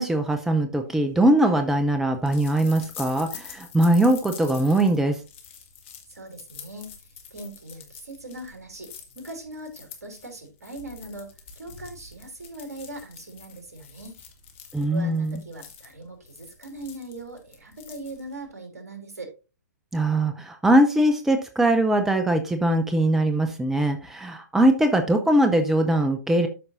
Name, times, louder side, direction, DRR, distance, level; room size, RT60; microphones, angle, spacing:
voice 1, 0.0-5.2 14.7-15.4 19.9-26.5, right 1 dB, 5° right, 7 dB, 0.6 m, -21 dB
sound 1, 1.0-18.5, left 7 dB, 45° left, 2.1 m, -46 dB
voice 2, 6.1-11.3 11.5-14.2 14.9-19.3, right 1 dB, 60° right, 4 dB, 3.1 m, -40 dB
13.0 x 5.3 x 2.6 m, 0.32 s
figure-of-eight pair, 115°, 9 cm